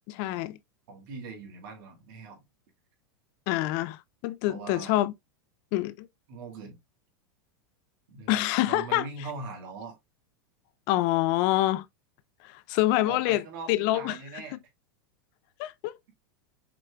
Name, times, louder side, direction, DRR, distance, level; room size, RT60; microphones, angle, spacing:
voice 1, 0.1-0.6 3.5-5.1 5.7-6.1 8.3-9.0 10.9-11.8 12.5-13.4 13.7-14.2 15.6-15.9, left 16 dB, 50° left, 0.4 m, -26 dB
voice 2, 0.9-2.4 4.5-5.0 6.3-6.8 8.1-10.0 12.8-14.6, right 4 dB, 65° right, 1.8 m, -41 dB
5.9 x 3.2 x 2.3 m
supercardioid pair, 125°, 12 cm